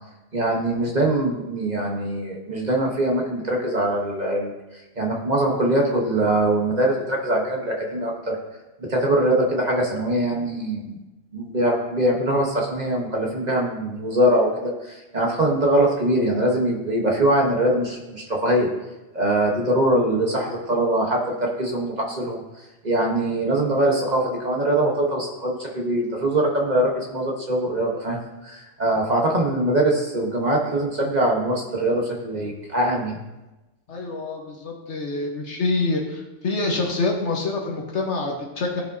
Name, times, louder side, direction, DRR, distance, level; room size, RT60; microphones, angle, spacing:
voice 1, 0.3-4.5 5.0-8.4 8.9-11.0 11.3-18.7 19.1-22.4 22.8-33.2, right 1 dB, 35° right, -1 dB, 1.1 m, -22 dB
voice 2, 33.9-38.8, left 3 dB, 70° left, 0 dB, 1.4 m, -26 dB
14.5 x 5.1 x 2.7 m, 1.1 s
omnidirectional pair, 1.3 m